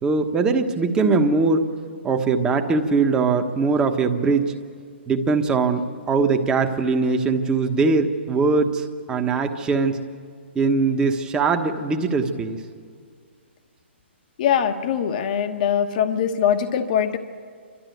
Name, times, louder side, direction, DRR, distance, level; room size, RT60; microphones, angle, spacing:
voice 1, 0.0-1.7 2.0-4.5 5.1-10.0 10.5-12.6, right 4 dB, 10° right, 5 dB, 1.3 m, -21 dB
voice 2, 14.4-17.2, left 8 dB, 45° left, 7 dB, 1.2 m, -22 dB
29.5 x 13.0 x 9.3 m, 2.1 s
hypercardioid pair, 150°, 6 cm